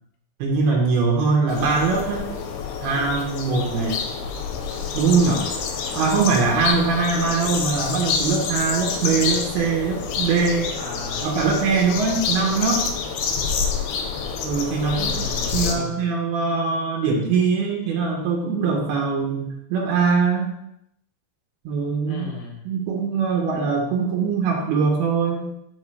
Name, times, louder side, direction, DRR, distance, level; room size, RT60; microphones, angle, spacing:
voice 1, 0.4-2.3 2.8-4.0 4.9-5.5 5.9-10.7 11.2-12.8 14.4-15.1 15.5-20.5 21.6-22.3 22.7-25.5, right 4 dB, 80° right, -1 dB, 2.9 m, -22 dB
sound 1, 1.5-15.7, left 5 dB, 90° left, 2.7 m, -27 dB
voice 2, 10.8-11.5 14.8-16.0 22.1-22.7, left 3 dB, 70° left, 0 dB, 3.0 m, -34 dB
8.8 x 4.5 x 3.2 m, 0.78 s
omnidirectional pair, 4.5 m